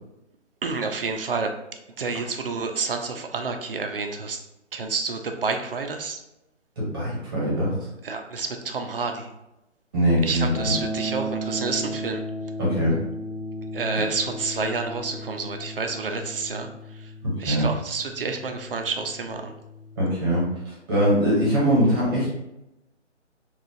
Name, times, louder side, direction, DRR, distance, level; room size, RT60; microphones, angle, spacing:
voice 1, 0.6-1.5 2.0-4.4 4.7-6.2 8.0-9.3 10.2-12.2 13.7-17.1 17.4-19.5, right 4 dB, 50° right, 5 dB, 0.5 m, -29 dB
voice 2, 6.8-7.7 9.9-10.7 12.6-13.0 17.2-17.6 20.0-22.3, equal, 20° right, -6 dB, 0.9 m, -22 dB
sound 1, 10.5-20.6, equal, 45° left, 0.4 m, -35 dB
4.0 x 2.3 x 2.7 m, 0.90 s
figure-of-eight pair, 150°, 37 cm